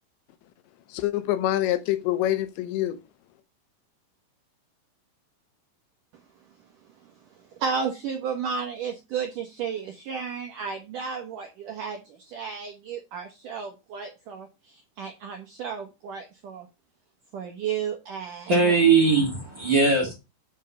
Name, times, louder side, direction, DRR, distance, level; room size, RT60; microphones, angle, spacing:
voice 1, 0.9-3.0, left 13 dB, 80° left, 2.9 m, -25 dB
voice 2, 7.5-16.7 17.3-18.7, right 6 dB, 75° right, 1.9 m, -33 dB
voice 3, 18.5-20.1, right 4 dB, 40° right, 1.8 m, -20 dB
9.6 x 5.3 x 5.5 m
omnidirectional pair, 5.4 m